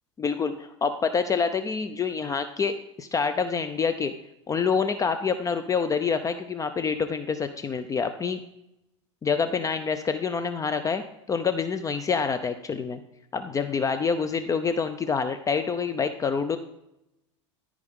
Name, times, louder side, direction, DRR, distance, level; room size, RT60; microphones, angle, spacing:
voice 1, 0.2-4.1 4.5-8.4 9.2-13.0 13.3-16.6, left 5 dB, 20° left, 9 dB, 0.5 m, -27 dB
14.0 x 4.8 x 3.6 m, 0.87 s
hypercardioid pair, 95°, 16 cm